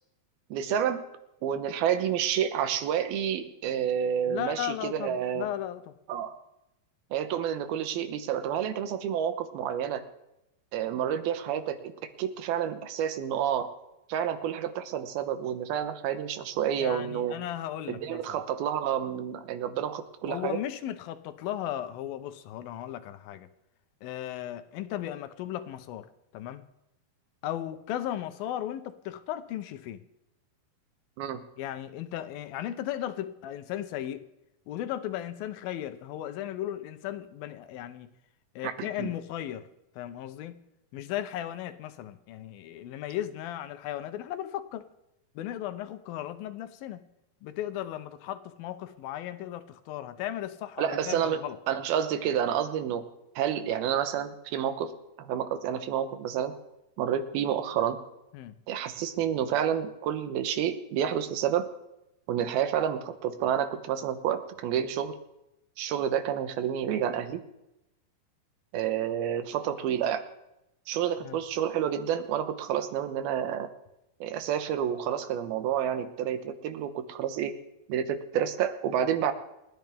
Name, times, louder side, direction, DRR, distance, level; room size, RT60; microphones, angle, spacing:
voice 1, 0.5-1.0 1.4-5.5 6.1-6.3 7.1-10.0 10.7-11.9 12.2-13.7 14.1-17.4 17.9-20.6 31.2-31.4 38.6-39.1 50.8-51.4 51.7-53.0 53.4-54.9 55.2-56.5 57.0-58.0 58.7-61.7 62.3-65.1 65.8-67.4 68.7-70.2 70.9-73.7 74.2-77.5 77.9-79.3, right 9 dB, 85° right, 2.9 m, -29 dB
voice 2, 4.3-5.9 16.8-18.4 20.3-23.5 24.0-26.6 27.4-30.0 31.6-34.3 34.7-38.1 38.6-39.7 40.0-40.6 40.9-44.9 45.4-47.0 47.4-51.6 58.3-58.6 71.2-71.4, left 12 dB, 85° left, 2.5 m, -36 dB
29.5 x 10.5 x 3.5 m
omnidirectional pair, 4.2 m